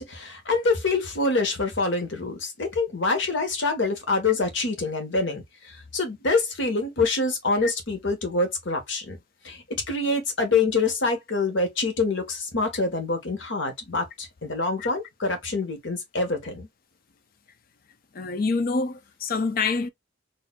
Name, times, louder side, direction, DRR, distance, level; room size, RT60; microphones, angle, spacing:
voice 1, 0.0-9.2 9.4-16.7, left 3 dB, 85° left, 1.2 m, -26 dB
voice 2, 18.1-19.9, left 4 dB, 50° left, 0.5 m, -26 dB
4.3 x 2.6 x 2.3 m
head